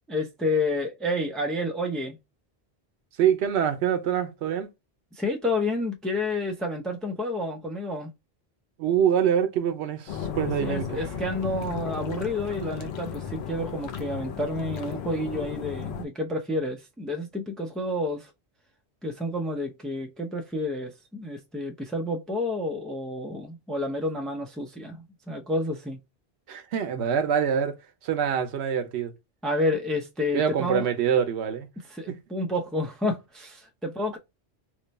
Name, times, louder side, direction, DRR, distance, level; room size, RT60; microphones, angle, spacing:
voice 1, 0.1-2.2 5.1-8.1 10.6-18.3 19.0-26.0 29.4-30.9 31.9-34.2, left 1 dB, ahead, 0.4 m, -30 dB
voice 2, 3.2-4.7 8.8-11.1 26.5-29.1 30.3-31.7 32.1-32.2, right 8 dB, 90° right, 0.9 m, -25 dB
sound 1, 10.1-16.0, left 7 dB, 75° left, 0.9 m, -34 dB
3.1 x 2.2 x 3.9 m
omnidirectional pair, 1.1 m